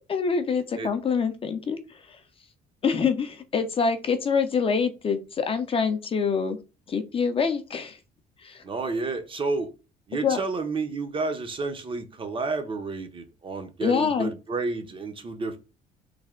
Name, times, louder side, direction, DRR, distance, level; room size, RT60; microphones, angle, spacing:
voice 1, 0.1-1.8 2.1-2.2 2.8-6.6 6.9-8.0 8.4-8.6 10.1-10.4 13.8-14.3, left 5 dB, 35° left, 8 dB, 0.5 m, -25 dB
voice 2, 8.6-9.7 10.1-15.6, right 3 dB, 30° right, 8 dB, 0.6 m, -30 dB
3.3 x 2.1 x 3.5 m, 0.30 s
cardioid pair, 110°, 17 cm